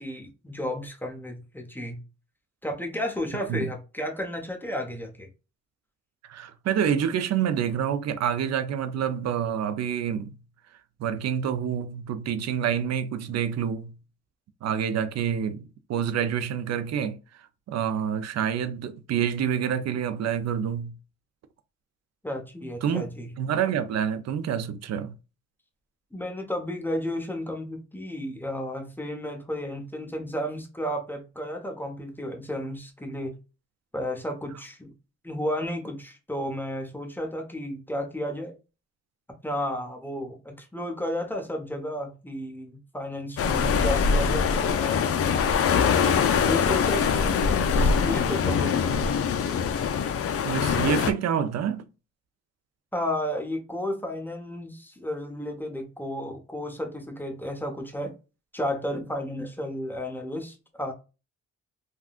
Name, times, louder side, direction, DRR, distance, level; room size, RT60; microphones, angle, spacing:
voice 1, 0.0-2.0 2.6-5.3 22.2-23.3 26.1-33.4 33.9-34.9 35.2-38.5 39.4-45.0 46.4-49.0 52.9-58.1 58.5-60.9, left 1 dB, 5° left, 1.0 m, -33 dB
voice 2, 6.3-10.3 11.0-13.9 14.6-17.2 17.7-20.9 22.8-23.0 23.4-25.1 50.4-51.8, right 8 dB, 60° right, 0.5 m, -27 dB
sound 1, 43.4-51.1, left 6 dB, 50° left, 0.5 m, -23 dB
3.6 x 2.3 x 2.4 m
cardioid pair, 90°, 30 cm